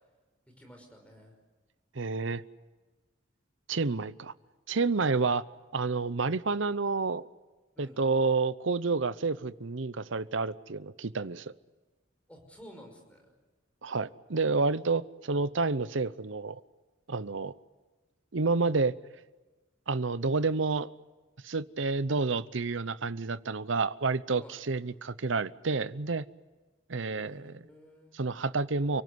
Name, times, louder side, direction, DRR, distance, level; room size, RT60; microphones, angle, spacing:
voice 1, 0.6-1.3 5.0-5.2 7.8-8.0 12.3-13.2 24.4-24.6 27.0-28.3, equal, 5° left, 3 dB, 5.6 m, -52 dB
voice 2, 1.9-2.4 3.7-4.3 4.7-5.4 5.7-7.3 7.8-11.5 13.8-16.6 17.1-17.5 18.3-18.9 19.9-20.9 21.4-26.2 26.9-27.6 28.1-29.0, right 4 dB, 75° right, 16 dB, 0.8 m, -29 dB
30.0 x 18.0 x 9.5 m, 1.3 s
head